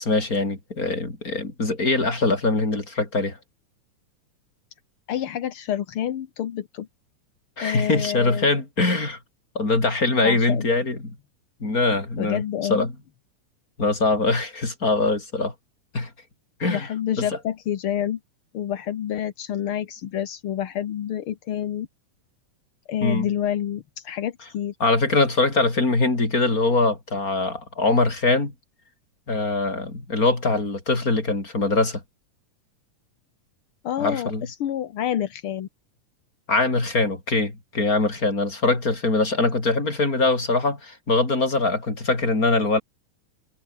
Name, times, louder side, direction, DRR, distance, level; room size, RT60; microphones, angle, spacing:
voice 1, 0.0-3.4 7.6-9.2 9.6-11.2 11.6-12.4 12.7-12.9 13.8-15.5 15.9-16.1 16.6-16.9 17.2-17.3 23.0-23.3 24.8-28.5 29.3-32.0 34.0-34.5 36.5-42.8, left 3 dB, 25° left, 5.2 m, -22 dB
voice 2, 5.1-6.9 7.6-8.5 10.2-10.6 12.2-12.9 16.7-18.2 18.5-21.9 22.9-24.7 33.8-35.7, left 10 dB, 55° left, 1.6 m, -28 dB
omnidirectional pair, 3.8 m